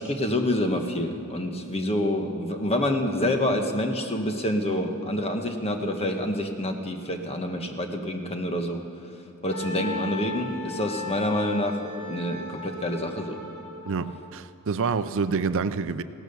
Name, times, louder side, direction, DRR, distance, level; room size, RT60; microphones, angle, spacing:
voice 1, 0.0-8.8 9.4-13.4, left 1 dB, 30° left, 5 dB, 1.3 m, -27 dB
Wind instrument woodwind instrument, 9.5-14.2, left 4 dB, 75° left, 4.1 m, -37 dB
voice 2, 13.8-16.0, right 5 dB, 65° right, 13 dB, 0.5 m, -27 dB
17.0 x 12.0 x 6.9 m, 2.8 s
head